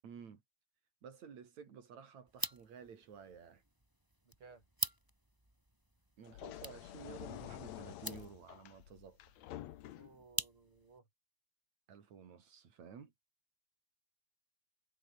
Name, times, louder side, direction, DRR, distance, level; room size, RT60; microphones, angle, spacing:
voice 1, 0.0-0.4 1.0-3.6 6.2-9.2 11.9-13.1, right 7 dB, 50° right, 3.9 m, -53 dB
sound 1, 2.3-11.0, right 1 dB, 5° right, 3.2 m, -46 dB
voice 2, 4.2-4.6 10.0-11.1, right 4 dB, 35° right, 5.0 m, -59 dB
sound 2, 6.2-10.2, left 13 dB, 65° left, 1.8 m, -49 dB
omnidirectional pair, 4.2 m